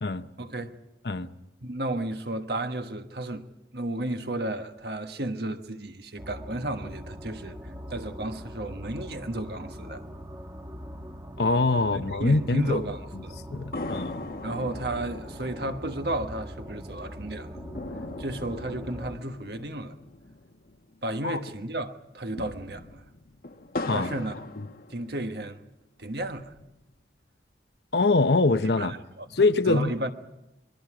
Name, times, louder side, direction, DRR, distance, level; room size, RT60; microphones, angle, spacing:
voice 1, 0.4-0.8 1.6-3.4 3.7-10.1 12.2-13.4 14.4-17.6 18.2-20.0 21.0-23.0 23.9-24.3 24.9-25.6 26.0-26.5 28.8-29.3 29.7-30.1, right 1 dB, 65° right, 1.3 m, -33 dB
sound 1, 6.2-19.2, equal, 20° right, 1.2 m, -42 dB
voice 2, 11.4-12.8 13.1-13.2 13.5-14.2 21.2-21.4 23.9-24.1 27.9-28.9 29.3-29.9, left 3 dB, 70° left, 0.9 m, -23 dB
sound 2, 13.7-21.3 21.6-21.7 22.1-25.5 26.0-27.0, left 2 dB, 55° left, 1.0 m, -40 dB
27.0 x 22.5 x 5.0 m
head